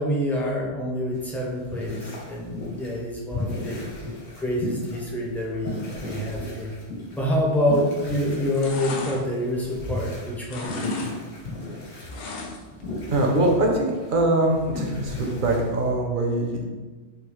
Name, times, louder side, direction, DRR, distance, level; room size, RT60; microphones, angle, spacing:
voice 1, 0.0-3.9 4.4-6.7 7.2-10.9, equal, ahead, -4 dB, 0.4 m, -27 dB
sound 1, 1.1-15.9, left 2 dB, 80° left, 1.2 m, -36 dB
sound 2, 7.7-8.0 8.3-10.1 10.4-11.1 11.4-12.8 13.2-13.3, left 3 dB, 65° left, 0.7 m, -34 dB
voice 2, 13.1-16.6, right 1 dB, 60° right, 0 dB, 0.6 m, -23 dB
3.6 x 2.8 x 3.0 m, 1.3 s
omnidirectional pair, 1.1 m